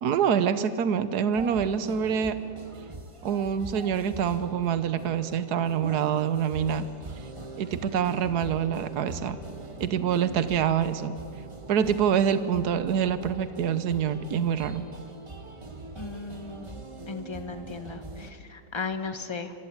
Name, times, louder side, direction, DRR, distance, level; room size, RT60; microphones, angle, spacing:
voice 1, 0.0-2.4 3.2-6.9 7.6-9.4 9.8-11.1 11.7-14.9, right 8 dB, 75° right, 12 dB, 1.5 m, -26 dB
sound 1, 1.3-18.3, right 2 dB, 20° right, 1.3 m, -42 dB
voice 2, 15.9-19.5, left 4 dB, 20° left, 7 dB, 1.5 m, -36 dB
26.0 x 24.0 x 8.8 m, 2.4 s
omnidirectional pair, 1.7 m